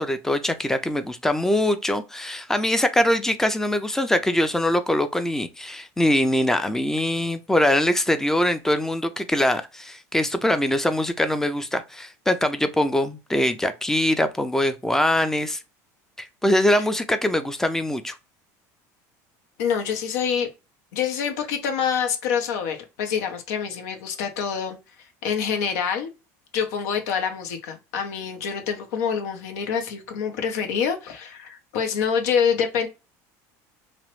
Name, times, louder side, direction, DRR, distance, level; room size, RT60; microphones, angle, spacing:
voice 1, 0.0-15.6 16.2-18.2, left 1 dB, 5° left, 0.3 m, -23 dB
voice 2, 19.6-20.5 20.9-24.8 25.2-26.1 26.5-32.9, left 7 dB, 85° left, 0.7 m, -26 dB
2.9 x 2.0 x 3.0 m
supercardioid pair, 130°, 8 cm